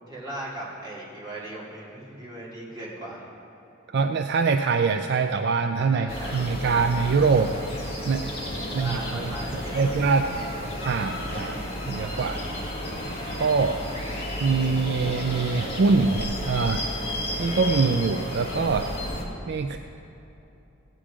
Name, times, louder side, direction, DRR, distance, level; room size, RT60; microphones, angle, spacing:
voice 1, 0.1-3.3 5.9-6.9 8.7-9.8, right 1 dB, 20° right, -7 dB, 2.8 m, -38 dB
voice 2, 3.9-7.5 8.1-8.3 8.7-9.3 9.7-10.3 10.8-12.4 13.4-13.8 14.4-16.8 17.4-18.9 19.5-19.8, right 4 dB, 55° right, 6 dB, 0.4 m, -24 dB
sound 1, 6.1-19.2, left 1 dB, 30° left, 1.8 m, -32 dB
16.0 x 9.0 x 4.9 m, 3.0 s
head